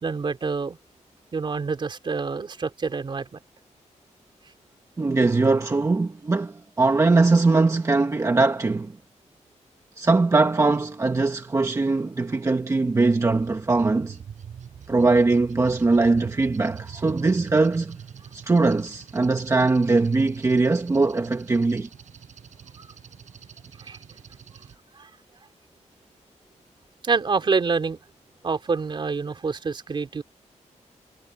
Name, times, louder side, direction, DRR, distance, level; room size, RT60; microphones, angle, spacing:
voice 1, 0.0-0.8 1.3-3.4 22.8-22.9 23.8-24.0 24.9-25.1 27.0-28.0 28.4-30.2, right 4 dB, 40° right, 3.3 m, -27 dB
voice 2, 5.0-8.9 10.0-14.2 14.9-18.0 18.3-21.9, right 3 dB, 25° right, 1.4 m, -21 dB
sound 1, 12.9-24.7, right 8 dB, 75° right, 6.5 m, -44 dB
wide cardioid pair, 160°, 13 cm